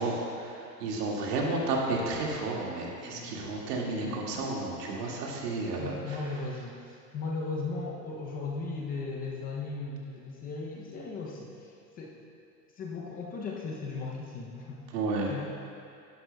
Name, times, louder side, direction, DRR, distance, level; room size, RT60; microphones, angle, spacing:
voice 1, 0.0-6.2 14.9-15.3, right 2 dB, 70° right, -2 dB, 2.1 m, -32 dB
voice 2, 5.8-12.2 12.8-14.9 15.3-15.5, left 3 dB, 20° left, -2 dB, 0.6 m, -37 dB
11.0 x 11.0 x 2.3 m, 2.4 s
hypercardioid pair, 130°, 49 cm